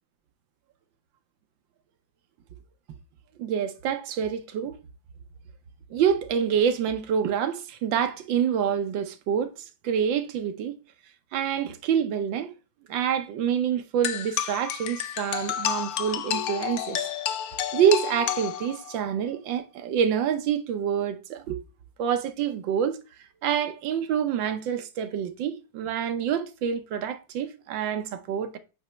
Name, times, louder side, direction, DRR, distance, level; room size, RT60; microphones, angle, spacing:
voice 1, 3.4-4.8 5.9-10.8 11.3-12.5 12.9-17.0 17.7-21.6 22.0-23.0 23.4-28.6, right 8 dB, 80° right, 1.5 m, -27 dB
sound 1, 14.0-19.0, left 10 dB, 65° left, 0.9 m, -30 dB
8.4 x 3.0 x 5.5 m
omnidirectional pair, 2.0 m